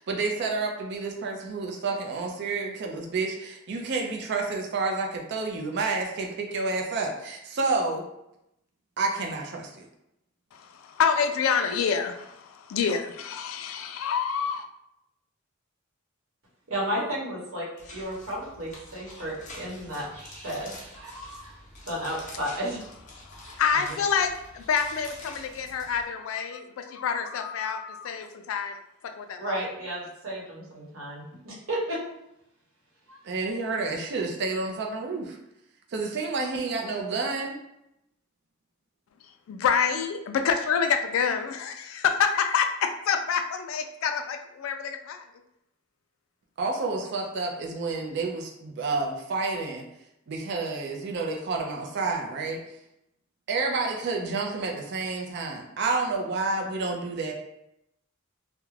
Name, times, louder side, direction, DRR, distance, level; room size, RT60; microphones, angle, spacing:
voice 1, 0.0-8.0 9.0-9.9 33.2-35.4 35.9-37.6 46.6-49.8 50.3-52.6 53.5-57.3, right 3 dB, 55° right, 1 dB, 0.4 m, -29 dB
voice 2, 10.5-14.6 23.2-28.8 29.0-29.6 39.2-45.3, left 6 dB, 70° left, 7 dB, 0.3 m, -27 dB
voice 3, 16.7-21.5 21.9-22.8 29.4-32.0 33.1-33.2, equal, 80° right, -5 dB, 1.0 m, -33 dB
sound 1, 17.8-26.0, left 1 dB, 35° left, 0.6 m, -47 dB
2.3 x 2.1 x 3.1 m, 0.83 s
head